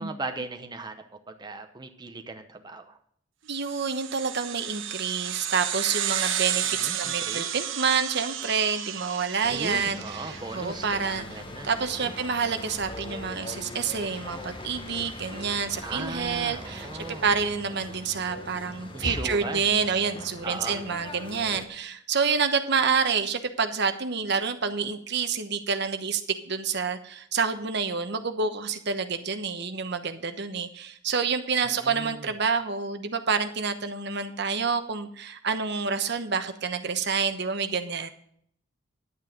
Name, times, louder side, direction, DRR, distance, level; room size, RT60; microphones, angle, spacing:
voice 1, 0.0-3.0 6.6-7.6 9.5-11.7 12.0-12.1 15.8-17.3 18.9-19.8 20.4-20.8 31.6-32.4, right 3 dB, 20° right, 5 dB, 0.9 m, -38 dB
voice 2, 3.5-26.2 26.5-38.1, right 5 dB, 60° right, 9 dB, 1.1 m, -28 dB
sound 1, 3.6-10.5, right 10 dB, 90° right, 1.1 m, -32 dB
sound 2, 9.4-21.7, left 1 dB, 25° left, 1.2 m, -40 dB
11.0 x 8.7 x 5.1 m, 0.64 s
head